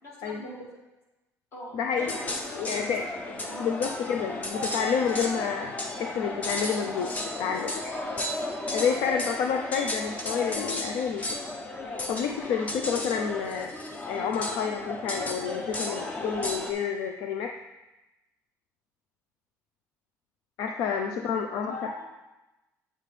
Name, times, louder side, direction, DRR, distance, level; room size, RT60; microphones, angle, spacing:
voice 1, 0.0-0.7 1.5-3.8 8.6-9.1 20.7-21.3 21.7-22.1, left 1 dB, 45° left, -3 dB, 2.3 m, -43 dB
voice 2, 1.7-2.2 2.5-3.0 3.6-7.9 8.7-11.4 12.1-13.7 14.1-17.5 20.6-21.7, left 7 dB, 70° left, 5 dB, 0.5 m, -29 dB
sound 1, 2.0-16.7, left 2 dB, 25° left, 0.7 m, -34 dB
7.6 x 7.6 x 3.3 m, 1.0 s
cardioid pair, 165°, 6 cm